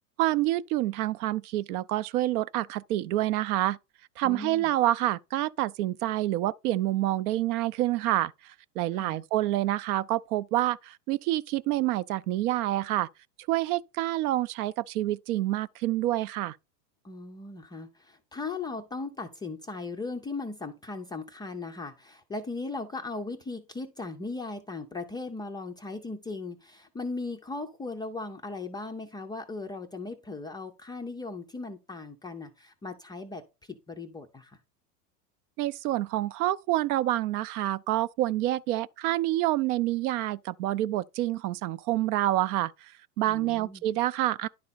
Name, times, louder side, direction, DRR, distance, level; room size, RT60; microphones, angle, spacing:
voice 1, 0.2-3.8 4.2-13.1 13.5-16.6 35.6-42.9 43.2-44.5, right 15 dB, 65° right, 0.6 m, -27 dB
voice 2, 4.2-4.7 9.0-9.2 17.0-34.6 43.3-43.8, left 3 dB, 10° left, 0.3 m, -38 dB
10.5 x 4.1 x 4.0 m
hypercardioid pair, 110°, 49 cm